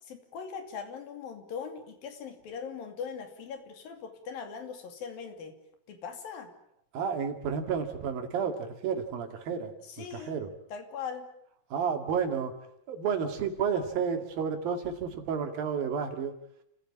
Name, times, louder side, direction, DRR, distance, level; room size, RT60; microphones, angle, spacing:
voice 1, 0.0-5.5 5.9-6.5 9.8-10.4 10.7-11.3, left 6 dB, 90° left, 6 dB, 4.4 m, -40 dB
voice 2, 6.9-10.5 11.7-12.6 12.9-16.3, right 6 dB, 85° right, 6 dB, 4.0 m, -31 dB
30.0 x 15.5 x 8.7 m, 0.73 s
omnidirectional pair, 4.0 m